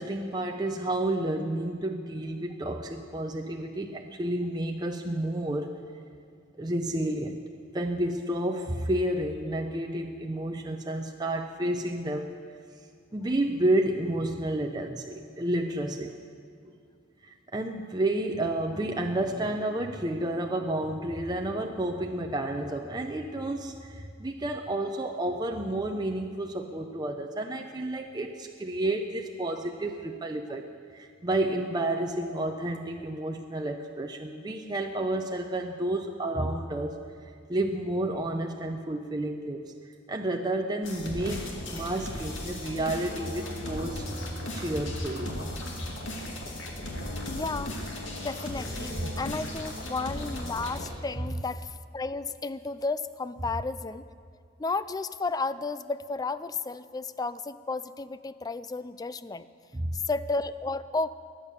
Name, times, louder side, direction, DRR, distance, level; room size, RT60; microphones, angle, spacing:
voice 1, 0.0-5.8 6.6-7.4 7.7-12.3 13.1-16.2 17.2-30.6 30.9-37.0 37.5-39.7 40.1-44.0 44.5-45.5 59.7-60.0, right 1 dB, 20° right, 3 dB, 0.6 m, -30 dB
sound 1, 40.8-50.9, left 1 dB, 65° left, 2.3 m, -36 dB
voice 2, 47.3-47.7 48.2-54.1 54.6-59.5 59.9-61.1, left 3 dB, 20° left, 15 dB, 0.3 m, -33 dB
21.5 x 8.9 x 6.9 m, 2.2 s
head